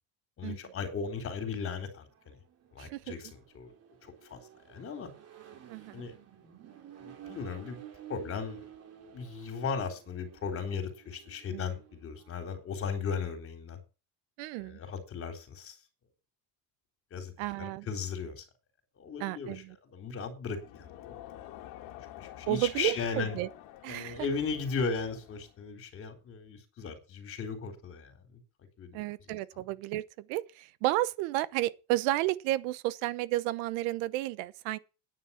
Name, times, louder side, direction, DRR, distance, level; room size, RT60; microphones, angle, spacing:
voice 1, 0.4-2.4 2.7-3.7 4.0-4.4 4.7-5.1 5.9-6.1 7.0-7.8 8.1-8.7 9.1-13.8 14.6-15.8 17.1-18.4 19.0-21.0 21.3-21.4 22.2-23.4 23.9-28.4 28.8-29.0 29.3-29.4, left 5 dB, 35° left, 3.9 m, -37 dB
Accelerating revving vroom, 2.0-12.4, right 9 dB, 40° right, 2.8 m, -52 dB
voice 2, 2.8-3.2 5.7-6.0 11.5-11.7 14.4-14.8 17.4-17.9 19.2-19.8 22.5-23.5 23.8-24.3 28.9-34.8, right 16 dB, 75° right, 1.0 m, -32 dB
Crowd, 20.5-25.7, left 12 dB, 55° left, 2.3 m, -49 dB
10.0 x 9.6 x 5.8 m
cardioid pair, 150°, 39 cm